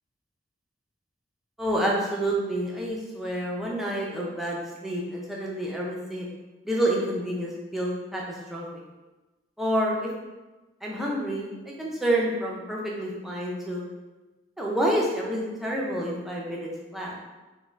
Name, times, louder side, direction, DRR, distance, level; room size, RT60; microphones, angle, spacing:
voice 1, 1.6-6.3 6.6-8.2 8.5-8.7 9.6-10.1 10.8-11.5 11.8-13.8 14.6-17.1, right 1 dB, ahead, -4 dB, 0.5 m, -28 dB
3.6 x 2.2 x 3.2 m, 1.2 s
head